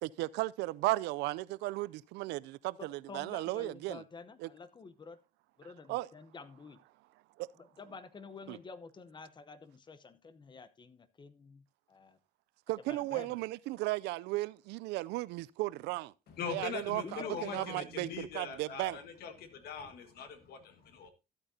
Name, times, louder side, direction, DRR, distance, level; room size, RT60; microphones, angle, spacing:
voice 1, 0.0-4.0 4.4-4.5 5.9-6.1 7.4-7.5 8.5-8.6 12.7-16.1 16.5-19.0, right 19 dB, 85° right, 0.5 m, -35 dB
voice 2, 2.8-5.2 5.6-6.8 7.6-12.2 12.9-13.4 17.0-17.8, left 4 dB, 25° left, 0.9 m, -49 dB
voice 3, 16.3-21.1, left 6 dB, 65° left, 1.7 m, -42 dB
13.5 x 8.7 x 2.8 m
cardioid pair, 110°, 17 cm